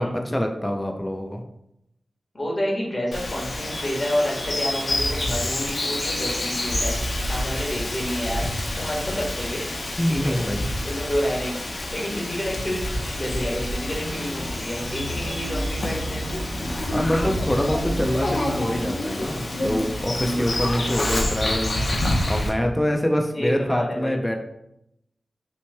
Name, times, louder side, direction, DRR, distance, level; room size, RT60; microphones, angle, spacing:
voice 1, 0.0-1.4 10.0-10.6 16.9-21.9 22.3-24.4, equal, 15° left, 3 dB, 0.5 m, -25 dB
voice 2, 2.3-8.4 8.7-9.7 10.1-16.2 23.3-24.2, equal, 35° left, -3 dB, 1.5 m, -29 dB
Bird vocalization bird call bird song, 3.1-22.5, left 1 dB, 70° left, 0.8 m, -28 dB
sound 1, 13.9-19.0, right 1 dB, 90° right, 0.5 m, -33 dB
5.6 x 3.1 x 2.2 m, 0.81 s
wide cardioid pair, 60°, 0 cm